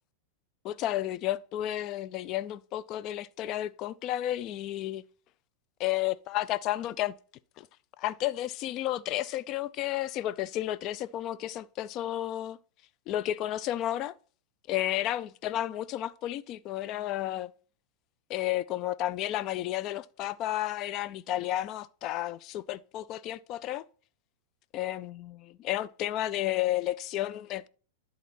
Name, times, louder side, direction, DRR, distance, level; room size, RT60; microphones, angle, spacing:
voice 1, 0.6-5.0 5.8-7.1 7.6-7.7 8.0-12.6 13.1-14.1 14.7-17.5 18.3-23.8 24.7-27.7, left 13 dB, 45° left, 0.4 m, -32 dB
11.0 x 4.1 x 4.2 m
hypercardioid pair, 100°, 0 cm